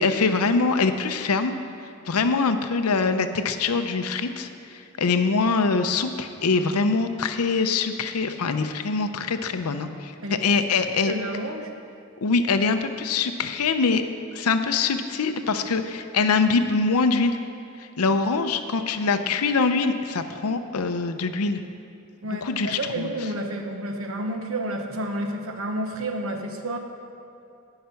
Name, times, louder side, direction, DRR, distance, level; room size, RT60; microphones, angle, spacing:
voice 1, 0.0-1.5 2.1-10.1 10.4-11.1 12.2-14.0 14.3-17.4 17.8-21.6 22.3-23.1, left 4 dB, 85° left, 8 dB, 0.6 m, -23 dB
voice 2, 10.8-11.7 22.2-26.8, right 1 dB, 70° right, 4 dB, 1.0 m, -30 dB
17.0 x 5.8 x 5.7 m, 2.5 s
head